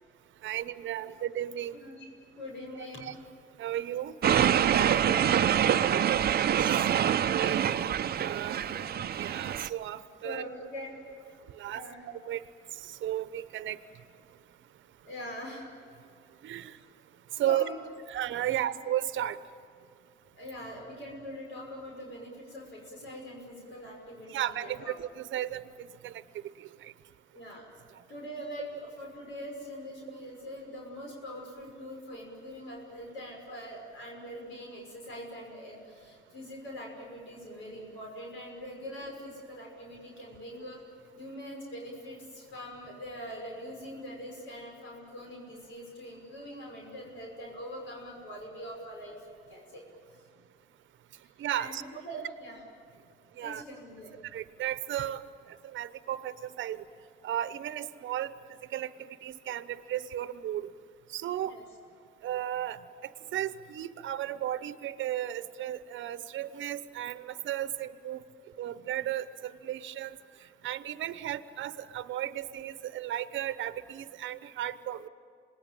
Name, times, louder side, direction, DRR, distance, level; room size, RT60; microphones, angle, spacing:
voice 1, 0.4-1.8 3.0-3.1 3.6-4.2 6.9-7.6 8.2-8.6 9.2-10.4 11.5-12.4 12.7-13.8 16.4-16.8 17.4-17.6 18.1-19.4 24.3-26.2 26.6-26.9 51.4-51.8 53.4-53.6 54.2-55.2 55.5-56.8 57.2-58.3 58.7-60.7 61.1-61.6 62.2-68.2 68.6-70.2 70.6-75.1, right 12 dB, 75° right, 13 dB, 0.9 m, -34 dB
voice 2, 1.7-2.1 2.4-3.1 4.5-5.8 8.7-9.0 10.2-11.0 11.7-12.0 15.0-15.7 17.4-17.8 18.5-18.8 20.3-24.9 27.3-27.7 28.1-40.8 41.1-49.2 49.5-49.8 50.2-50.3 51.6-52.6 53.4-54.2 61.5-61.6, equal, 80° left, -1 dB, 5.7 m, -43 dB
sound 1, 4.2-9.7, right 9 dB, 50° right, 0.7 m, -25 dB
27.0 x 20.0 x 9.0 m, 2.2 s
cardioid pair, 90°, 20 cm